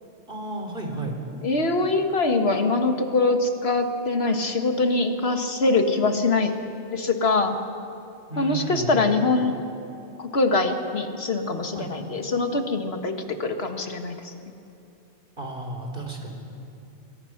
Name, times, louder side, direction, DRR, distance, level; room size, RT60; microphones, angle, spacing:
voice 1, 0.3-1.2 8.3-8.9 11.7-11.9 15.4-16.4, right 2 dB, 50° right, 2 dB, 3.5 m, -32 dB
voice 2, 1.4-6.5 6.9-7.6 8.4-9.6 10.2-14.3, left 3 dB, 60° left, 5 dB, 1.9 m, -23 dB
28.0 x 22.5 x 6.0 m, 2.7 s
omnidirectional pair, 1.2 m